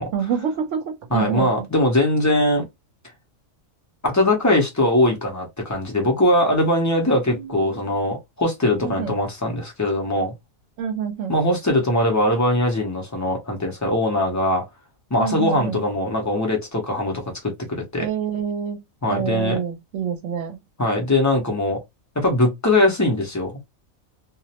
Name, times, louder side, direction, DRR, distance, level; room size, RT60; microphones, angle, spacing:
voice 1, 0.1-1.7 7.3-7.8 8.8-9.2 10.8-11.3 15.2-15.8 18.0-18.8 19.1-20.6, right 7 dB, 70° right, 0.9 m, -27 dB
voice 2, 1.1-2.6 4.0-10.3 11.3-14.6 15.1-18.1 19.0-19.6 20.8-21.8 22.2-23.5, left 1 dB, 25° left, 0.4 m, -21 dB
2.4 x 2.0 x 2.8 m
omnidirectional pair, 1.4 m